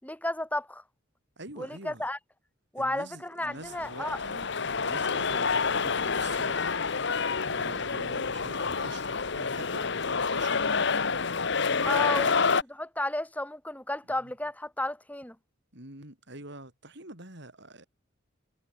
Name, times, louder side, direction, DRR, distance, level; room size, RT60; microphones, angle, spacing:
voice 1, 0.0-0.8 1.6-2.2 2.7-4.2 11.9-15.4, left 1 dB, 10° left, 3.7 m, -33 dB
voice 2, 1.4-2.1 2.8-4.5 4.8-6.6 7.5-12.4 14.2-14.3 15.7-17.8, right 2 dB, 60° right, 7.5 m, -46 dB
sound 1, 3.6-12.6, left 5 dB, 60° left, 1.3 m, -28 dB
head